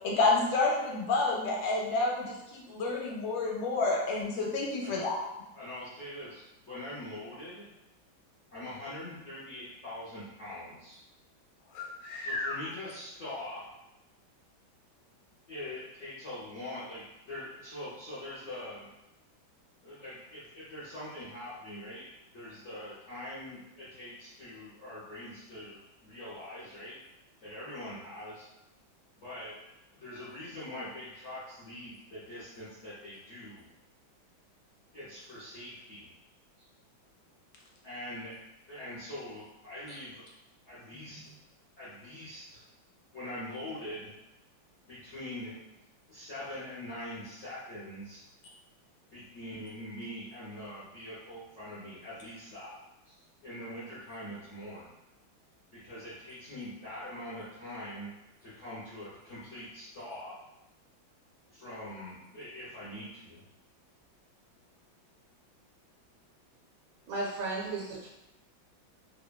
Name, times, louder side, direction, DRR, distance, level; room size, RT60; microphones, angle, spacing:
voice 1, 0.0-5.2 11.7-12.5 40.9-41.1, left 3 dB, 75° left, -2 dB, 1.3 m, -29 dB
voice 2, 4.8-5.1 5.5-7.7 8.5-11.0 12.2-13.6 15.5-18.9 19.8-26.9 27.4-28.5 29.2-29.5 29.9-33.7 34.9-36.1 36.6-36.7 37.8-38.3 38.7-40.2 40.7-41.2 41.8-42.6 43.1-44.1 44.8-45.6 46.1-48.2 49.1-52.8 53.0-53.1 53.4-54.9 55.7-58.1 58.4-60.3 61.5-63.4, left 1 dB, 60° left, -11 dB, 0.7 m, -43 dB
voice 3, 67.1-68.1, right 2 dB, 75° right, -3 dB, 1.5 m, -34 dB
3.4 x 2.1 x 2.2 m, 0.96 s
omnidirectional pair, 2.1 m